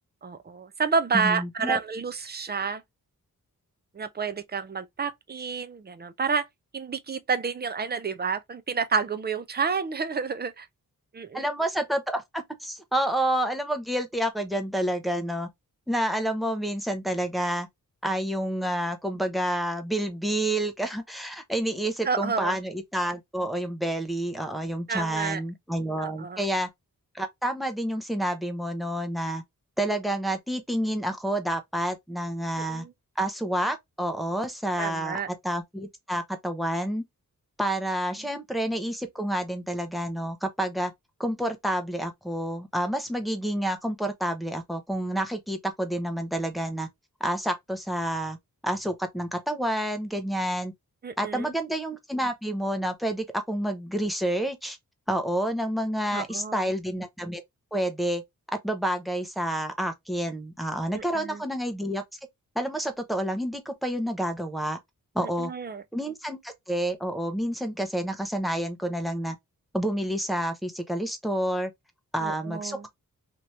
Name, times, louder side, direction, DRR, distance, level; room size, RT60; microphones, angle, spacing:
voice 1, 0.2-2.8 3.9-6.5 6.7-10.7 11.1-11.5 22.0-22.6 24.9-25.4 26.0-26.4 32.6-32.9 34.8-35.3 51.0-51.5 56.1-56.7 60.9-61.4 65.2-65.8 72.2-72.9, right 5 dB, 30° right, 0.4 m, -30 dB
voice 2, 1.1-1.8 11.3-15.5 15.9-17.7 18.0-26.7 27.1-29.4 29.8-32.8 33.2-35.2 35.4-37.0 37.6-40.9 41.2-46.9 47.2-48.4 48.6-50.7 51.2-54.8 55.1-57.4 57.7-58.2 58.6-62.0 62.6-64.8 65.1-65.5 65.9-69.3 69.7-71.7 72.1-72.9, right 1 dB, ahead, 0.7 m, -29 dB
2.9 x 2.5 x 3.1 m
wide cardioid pair, 100°, 35 cm